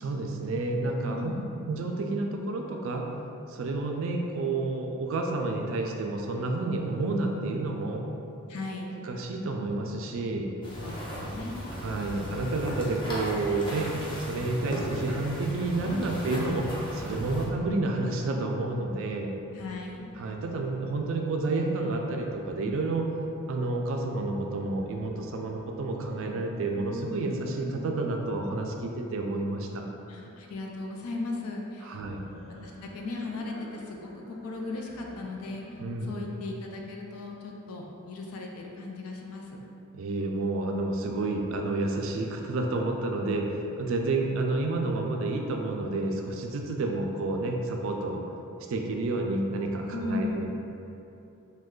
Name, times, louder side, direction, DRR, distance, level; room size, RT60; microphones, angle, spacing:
voice 1, 0.0-1.3 1.7-3.1 3.5-8.0 9.0-10.5 11.8-13.9 14.2-19.3 20.2-23.1 23.5-29.8 31.8-32.2 35.8-36.2 39.9-48.2 48.7-50.5, right 2 dB, 60° right, 2 dB, 0.3 m, -30 dB
voice 2, 1.0-1.5 8.5-8.9 10.8-11.8 19.5-20.1 30.1-32.0 32.5-39.6 49.9-50.5, left 3 dB, 75° left, 0 dB, 0.4 m, -37 dB
sound 1, 10.6-17.5, equal, 20° left, 0.5 m, -36 dB
sound 2, 19.4-21.0 22.0-28.8 31.9-35.7, equal, 40° left, 1.0 m, -49 dB
3.1 x 2.2 x 3.6 m, 2.8 s
head